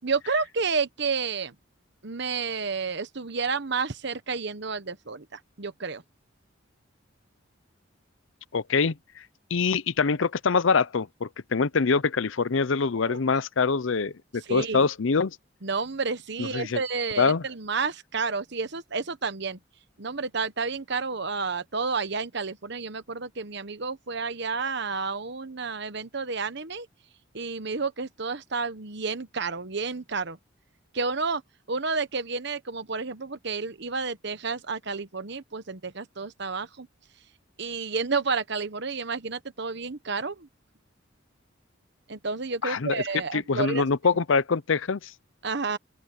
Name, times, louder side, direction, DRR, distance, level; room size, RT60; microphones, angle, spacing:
voice 1, 0.0-1.5 2.0-6.0 13.0-13.2 14.5-14.9 15.6-19.6 20.0-26.9 27.3-30.4 30.9-31.4 31.7-36.9 37.6-40.5 42.1-43.9 45.4-45.8, right 4 dB, 55° right, 1.2 m, -30 dB
voice 2, 8.5-9.0 9.5-15.4 16.4-16.8 17.2-17.4 42.6-43.0 43.3-45.1, left 5 dB, 70° left, 0.6 m, -24 dB
open air
head